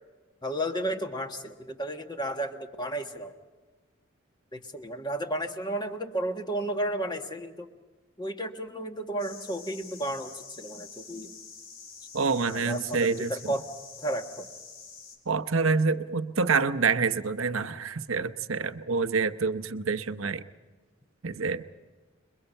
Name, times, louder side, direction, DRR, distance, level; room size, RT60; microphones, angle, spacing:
voice 1, 0.4-3.3 4.5-7.7 8.2-11.3 12.4-13.6 14.0-14.5, right 1 dB, 20° left, 5 dB, 1.5 m, -33 dB
sound 1, 9.2-15.2, left 5 dB, 75° left, 4.4 m, -47 dB
voice 2, 12.1-13.3 15.3-20.4 21.2-21.6, right 4 dB, 80° right, 11 dB, 0.9 m, -27 dB
29.0 x 22.5 x 5.6 m, 1.3 s
head